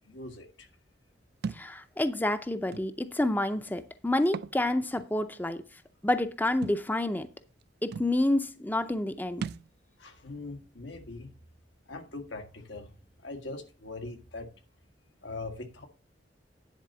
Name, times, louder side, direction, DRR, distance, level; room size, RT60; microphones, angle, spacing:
voice 1, 0.1-0.7 10.0-11.3 11.9-12.9 13.2-14.5 15.2-15.9, left 2 dB, 85° left, 1.7 m, -41 dB
Thump thud, 1.4-1.7 2.7-2.9 4.2-4.6 5.0-5.1 6.6-6.8 7.6-7.7 7.9-8.1 9.4-9.7, right 5 dB, 60° right, 0.3 m, -36 dB
voice 2, 1.5-5.6 6.0-7.3 7.8-9.4, left 1 dB, 10° left, 0.5 m, -28 dB
10.5 x 4.1 x 6.8 m
head